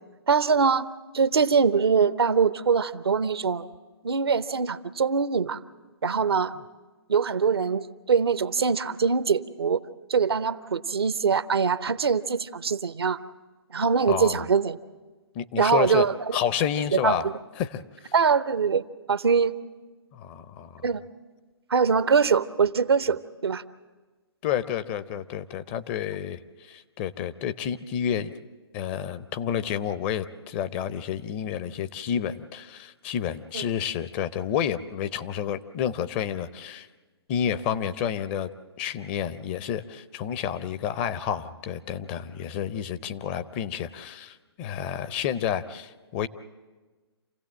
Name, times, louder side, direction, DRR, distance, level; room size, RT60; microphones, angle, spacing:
voice 1, 0.3-0.9 1.1-3.7 4.0-5.6 6.0-6.5 7.1-9.8 10.1-13.2 13.7-14.8 15.6-16.4 16.9-17.3 18.1-18.8 19.1-19.5 20.8-21.0 21.7-23.6 33.5-33.6, right 5 dB, 70° right, 15 dB, 0.8 m, -23 dB
voice 2, 14.1-14.4 15.3-16.1 16.3-17.3 17.6-18.1 20.1-20.8 24.4-28.3 28.7-36.9 37.3-38.5 38.8-46.3, left 9 dB, 25° left, 13 dB, 0.6 m, -30 dB
28.0 x 16.0 x 7.5 m, 1.3 s
figure-of-eight pair, 130°, 14 cm